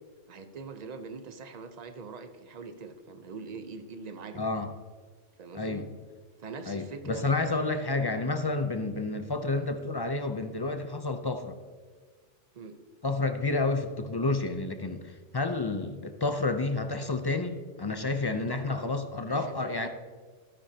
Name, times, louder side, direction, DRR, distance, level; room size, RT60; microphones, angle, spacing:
voice 1, 0.3-4.5 5.4-5.8 6.4-7.3 12.5-12.8 18.2-18.8 19.3-19.9, right 4 dB, 40° right, 8 dB, 0.8 m, -43 dB
voice 2, 4.3-4.7 5.5-5.9 6.7-11.6 13.0-19.9, left 3 dB, 30° left, 7 dB, 0.4 m, -30 dB
13.5 x 12.5 x 2.8 m, 1.5 s
omnidirectional pair, 1.2 m